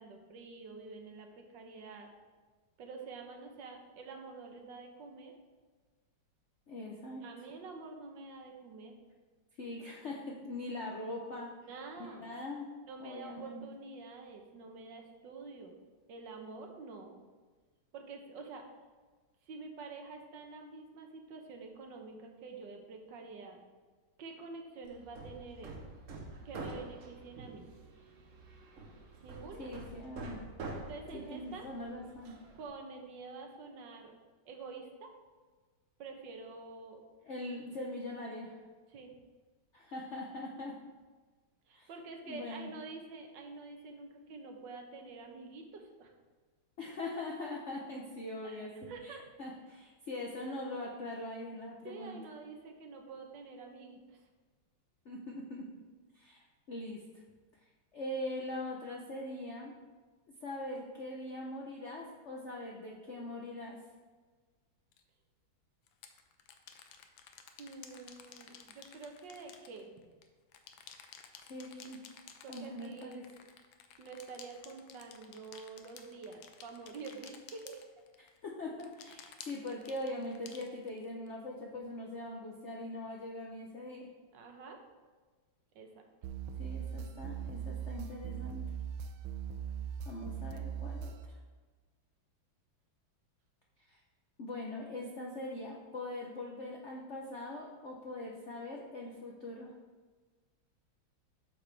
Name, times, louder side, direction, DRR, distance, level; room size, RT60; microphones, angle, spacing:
voice 1, 0.0-2.1 2.8-5.3 7.2-9.0 11.5-12.3 12.8-15.8 16.1-17.2 17.9-18.6 19.4-23.6 24.2-25.8 26.4-27.7 29.2-29.7 30.9-31.7 32.6-34.1 34.4-35.1 36.0-37.0 38.9-39.1 41.7-46.1 48.4-49.2 51.8-54.2 67.6-69.9 72.4-73.2 74.0-77.8 84.3-84.8 85.7-86.0, right 4 dB, 70° right, 3 dB, 1.5 m, -48 dB
voice 2, 6.7-7.2 9.6-11.5 12.2-12.7 13.0-13.7 29.6-30.4 31.1-32.3 37.2-38.6 39.7-40.7 41.7-41.9 42.3-42.7 46.8-52.2 55.0-55.7 56.1-57.0 57.9-59.7 60.4-63.8 71.4-72.0 72.5-73.2 78.2-84.1 86.6-88.6 90.1-91.4 93.9-94.0 94.4-99.7, left 1 dB, 60° left, -1 dB, 0.7 m, -42 dB
Hammer, 24.8-32.7, right 3 dB, 50° right, 1.0 m, -47 dB
sound 1, 64.9-65.0 65.9-70.3 70.5-78.4 78.8-81.3, left 7 dB, 80° left, 1.4 m, -54 dB
sound 2, 86.2-91.3, right 7 dB, 90° right, 1.4 m, -40 dB
8.8 x 6.6 x 3.3 m, 1.4 s
omnidirectional pair, 2.2 m